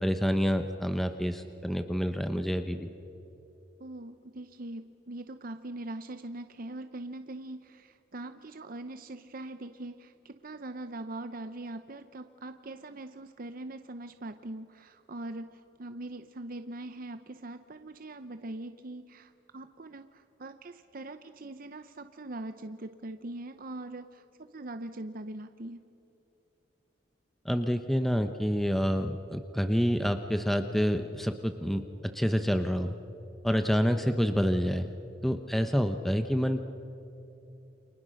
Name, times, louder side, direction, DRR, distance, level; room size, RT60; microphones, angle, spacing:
voice 1, 0.0-2.9 27.4-32.9 33.4-34.9 35.2-36.7, equal, ahead, 7 dB, 0.8 m, -28 dB
voice 2, 3.8-25.8, right 2 dB, 50° right, 9 dB, 0.8 m, -42 dB
29.5 x 26.0 x 6.4 m, 3.0 s
head